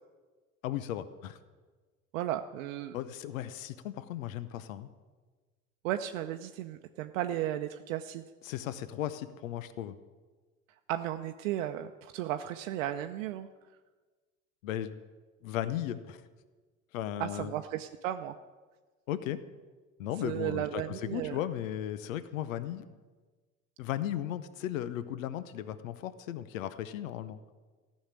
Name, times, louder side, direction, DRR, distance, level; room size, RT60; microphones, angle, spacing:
voice 1, 0.6-1.4 2.9-4.9 8.4-9.9 14.6-15.0 15.4-16.2 16.9-17.5 19.1-19.4 20.0-22.9 23.8-27.4, left 11 dB, 75° left, 14 dB, 0.8 m, -36 dB
voice 2, 2.1-3.0 5.8-8.2 10.9-13.5 17.2-18.3 20.2-21.4, right 12 dB, 70° right, 7 dB, 0.7 m, -34 dB
14.5 x 6.5 x 9.6 m, 1.3 s
hypercardioid pair, 65°, 40 cm